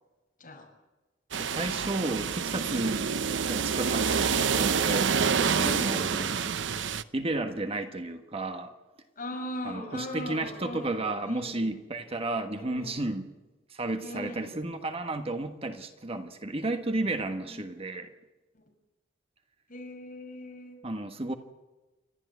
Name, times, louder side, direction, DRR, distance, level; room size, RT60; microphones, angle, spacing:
voice 1, 0.4-0.7 3.0-3.4 5.5-6.1 9.2-11.6 12.5-13.0 14.0-14.6 17.4-17.7 18.5-18.7 19.7-20.8, left 1 dB, 50° left, 2 dB, 5.7 m, -39 dB
sound 1, 1.3-7.0, right 6 dB, 75° right, 0.8 m, -27 dB
voice 2, 1.4-3.1 3.4-6.5 7.1-8.7 9.6-13.3 13.7-18.1 20.8-21.3, right 2 dB, 30° right, 7 dB, 1.4 m, -33 dB
29.5 x 13.0 x 9.5 m, 1.1 s
head